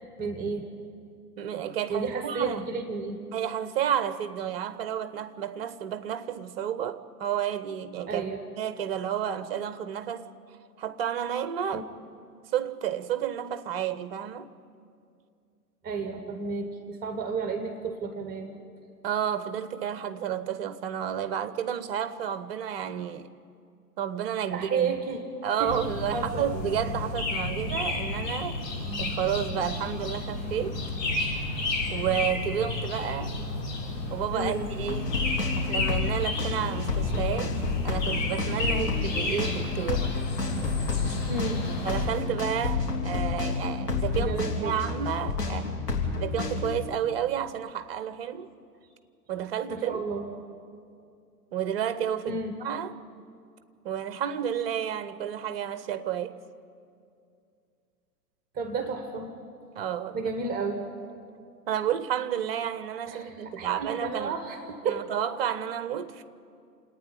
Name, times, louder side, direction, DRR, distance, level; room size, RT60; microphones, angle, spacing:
voice 1, 0.2-0.7 1.9-3.2 8.1-8.4 11.7-11.8 15.8-18.6 24.5-25.2 25.6-25.8 26.1-26.5 34.3-34.7 38.7-39.0 41.3-41.6 44.2-44.7 49.7-50.3 52.3-52.5 58.5-59.3 60.1-60.8 63.1-65.1, right 4 dB, 20° right, 1.2 m, -32 dB
voice 2, 1.4-2.6 3.3-8.2 8.5-10.3 10.8-11.9 12.5-14.5 19.0-23.3 24.0-25.0 25.4-28.6 29.0-30.8 31.9-33.3 34.1-35.2 35.6-37.6 37.8-40.1 41.8-44.3 44.6-45.7 46.1-48.5 49.3-50.0 51.5-52.9 53.8-56.4 59.8-60.3 61.7-64.4 64.8-66.2, right 9 dB, 40° right, 0.8 m, -31 dB
sound 1, 25.7-42.0, left 2 dB, 35° left, 4.0 m, -32 dB
sound 2, 34.8-46.8, left 4 dB, 75° left, 3.4 m, -30 dB
28.0 x 9.3 x 10.0 m
figure-of-eight pair, 110°, 48 cm